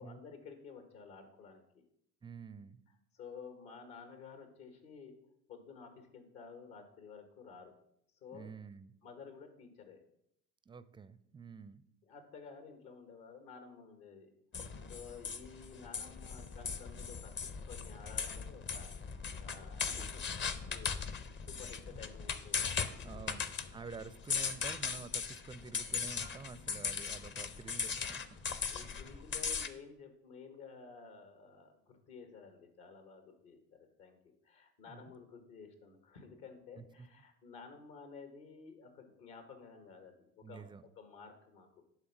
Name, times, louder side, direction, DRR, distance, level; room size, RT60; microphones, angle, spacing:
voice 1, 0.0-1.8 3.1-5.1 5.5-7.7 8.2-8.5 9.0-10.0 12.1-14.3 14.6-20.3 20.7-23.5 25.9-26.1 27.3-27.4 28.7-34.2 34.4-40.6 41.0-41.8, left 5 dB, 65° left, 7 dB, 1.7 m, -53 dB
voice 2, 2.2-2.8 8.3-8.9 10.7-11.8 21.9-22.0 23.0-29.1 34.9-35.1 36.8-37.1 40.4-40.9, right 5 dB, 15° right, 14 dB, 0.4 m, -49 dB
sound 1, 14.5-29.7, left 6 dB, 30° left, 0.7 m, -39 dB
10.5 x 3.6 x 6.0 m, 0.74 s
hypercardioid pair, 65°, 38 cm